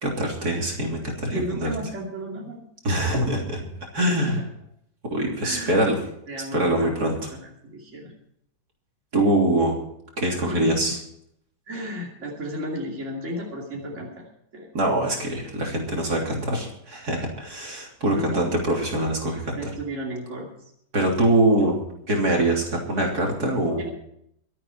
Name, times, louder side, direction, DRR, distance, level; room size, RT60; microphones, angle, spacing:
voice 1, 0.0-1.7 2.8-3.6 3.9-4.4 5.1-6.0 6.5-7.1 9.1-9.8 10.2-11.0 14.7-19.7 20.9-21.8 22.1-23.9, right 1 dB, 60° right, -1 dB, 3.8 m, -23 dB
voice 2, 1.3-2.6 4.0-4.4 5.4-5.9 6.3-6.9 7.3-8.1 10.4-10.8 11.7-14.3 14.5-14.8 18.2-18.4 19.6-20.7 23.8-23.9, equal, 40° right, -2 dB, 3.0 m, -34 dB
23.5 x 8.9 x 4.6 m, 0.72 s
omnidirectional pair, 1.9 m